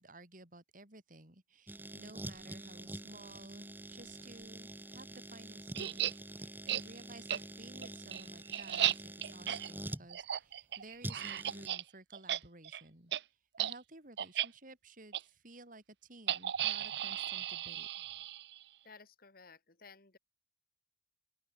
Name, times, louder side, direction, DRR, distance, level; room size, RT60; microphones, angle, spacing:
voice 1, 0.0-13.1 13.6-17.9, right 2 dB, 50° right, 5.2 m, -55 dB
sound 1, 1.7-10.1 11.0-11.7, right 1 dB, 10° right, 1.5 m, -46 dB
sound 2, 5.7-6.1 6.7-6.8 7.3-7.4 7.8-11.8 12.1-12.4 12.6-12.8 13.1-13.2 13.6-13.7 14.2-14.5 15.1-15.2 16.3-18.6, right 11 dB, 65° right, 0.6 m, -35 dB
voice 2, 18.8-20.2, left 4 dB, 55° left, 2.3 m, -56 dB
open air
head